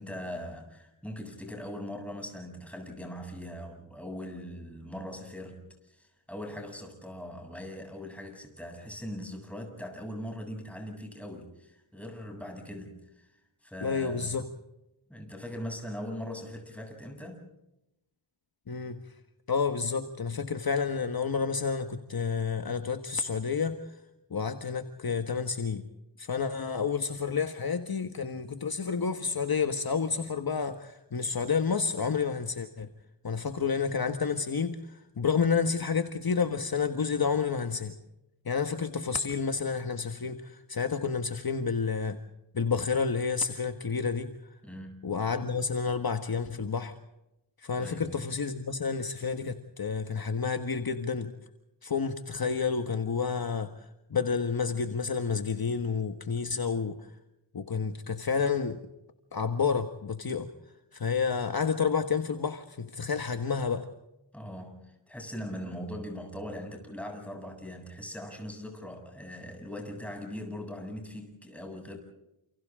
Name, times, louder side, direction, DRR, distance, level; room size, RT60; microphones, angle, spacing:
voice 1, 0.0-13.3 13.6-14.4 15.1-17.4 44.6-45.1 47.8-48.0 64.3-72.0, equal, 5° left, 2 dB, 7.9 m, -40 dB
voice 2, 13.8-14.5 18.7-19.0 19.5-24.0 24.3-25.8 26.2-32.9 33.2-37.9 38.4-42.2 42.5-44.6 45.0-46.9 47.6-51.3 51.8-57.1 57.5-58.8 59.3-60.5 60.9-63.9, left 5 dB, 50° left, 7 dB, 1.6 m, -30 dB
30.0 x 29.0 x 3.8 m, 0.88 s
wide cardioid pair, 85°, 48 cm